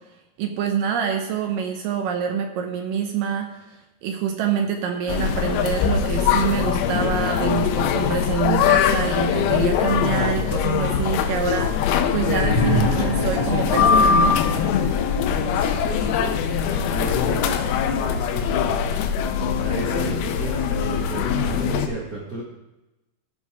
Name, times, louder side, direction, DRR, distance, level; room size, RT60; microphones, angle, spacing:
voice 1, 0.4-3.6 4.0-14.4, right 7 dB, 75° right, 4 dB, 2.1 m, -26 dB
sound 1, 5.1-21.9, left 7 dB, 80° left, 2.6 m, -22 dB
sound 2, 12.2-16.0 17.2-17.3, left 2 dB, 65° left, 1.1 m, -27 dB
voice 2, 15.5-16.3 16.6-17.6 18.1-19.0 19.6-22.4, right 2 dB, 90° right, -5 dB, 0.8 m, -33 dB
14.5 x 5.6 x 4.7 m, 1.0 s
omnidirectional pair, 4.6 m